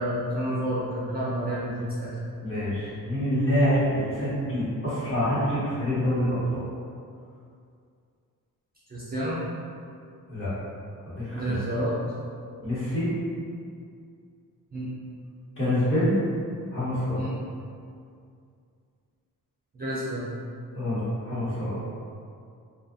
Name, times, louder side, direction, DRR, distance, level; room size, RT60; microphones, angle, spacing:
voice 1, 0.0-2.1 8.9-9.4 11.3-12.0 14.7-14.9 17.1-17.3 19.7-20.2, right 1 dB, 25° right, -8 dB, 0.4 m, -29 dB
voice 2, 2.4-6.7 10.3-10.5 11.0-11.6 12.6-13.1 15.6-16.1 16.7-17.2 20.7-21.8, equal, 35° left, -11 dB, 1.1 m, -26 dB
2.6 x 2.4 x 2.5 m, 2.3 s
wide cardioid pair, 145°, 35 cm